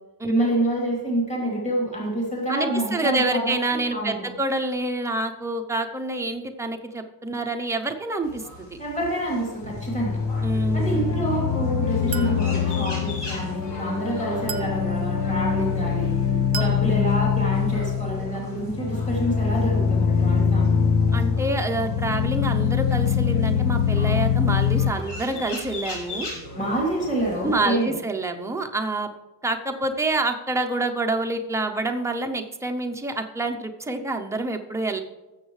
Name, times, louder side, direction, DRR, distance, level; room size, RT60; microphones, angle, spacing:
voice 1, 0.2-4.3 8.8-10.2 10.7-16.1 16.5-20.9 26.5-28.0, right 1 dB, 15° left, -3 dB, 2.8 m, -27 dB
voice 2, 2.5-8.8 10.4-11.0 16.5-16.7 21.1-26.3 27.4-29.1 29.4-35.0, right 2 dB, 5° right, 4 dB, 0.6 m, -27 dB
sound 1, 8.2-27.6, left 1 dB, 70° left, 4.2 m, -40 dB
sound 2, 9.6-24.9, left 7 dB, 45° left, 0.7 m, -23 dB
Chink clink, 12.1-12.5 14.5-14.8 16.5-16.9, right 9 dB, 55° right, 0.7 m, -33 dB
19.0 x 7.3 x 3.2 m, 1.1 s
cardioid pair, 160°, 44 cm